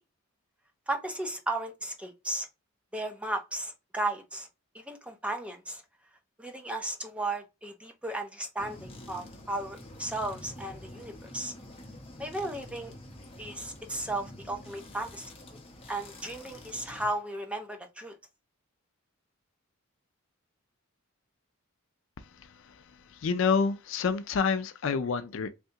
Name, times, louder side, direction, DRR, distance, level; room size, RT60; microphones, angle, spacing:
voice 1, 0.9-2.5 2.9-4.5 4.7-5.8 6.4-11.5 12.2-12.9 13.4-15.3 15.9-18.2, right 2 dB, 5° right, 0.5 m, -35 dB
sound 1, 8.6-17.1, left 1 dB, 30° left, 0.8 m, -47 dB
voice 2, 23.1-25.5, left 5 dB, 65° left, 0.4 m, -28 dB
3.4 x 2.7 x 2.8 m
head